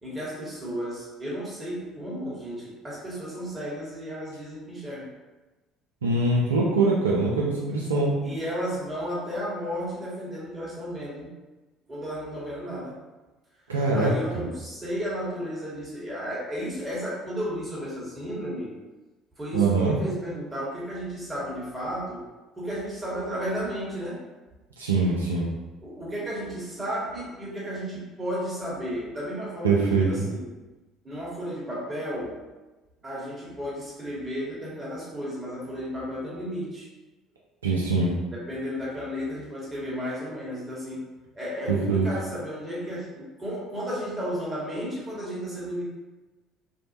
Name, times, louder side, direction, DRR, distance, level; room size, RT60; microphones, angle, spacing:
voice 1, 0.0-5.1 8.2-11.3 11.9-13.0 13.9-18.7 19.4-22.3 22.6-24.3 25.8-30.5 31.0-32.4 33.0-36.9 38.3-45.9, equal, 20° right, -6 dB, 1.1 m, -33 dB
voice 2, 6.0-8.1 13.7-14.1 19.5-19.9 24.8-25.5 29.6-30.1 37.6-38.1 41.7-42.1, right 3 dB, 80° right, -4 dB, 0.3 m, -23 dB
2.5 x 2.0 x 2.9 m, 1.2 s
figure-of-eight pair, 55°, 0 cm